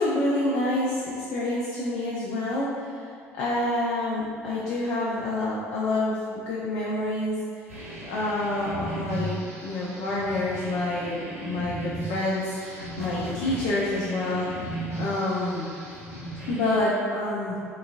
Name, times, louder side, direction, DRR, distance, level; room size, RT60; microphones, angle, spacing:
voice 1, 0.0-2.9 3.4-7.4 8.0-14.6 14.9-15.7 16.5-17.6, left 2 dB, 50° left, -6 dB, 0.5 m, -27 dB
sound 1, 7.7-16.8, right 1 dB, 85° right, 0.6 m, -36 dB
3.6 x 2.3 x 2.4 m, 2.2 s
figure-of-eight pair, 55°, 8 cm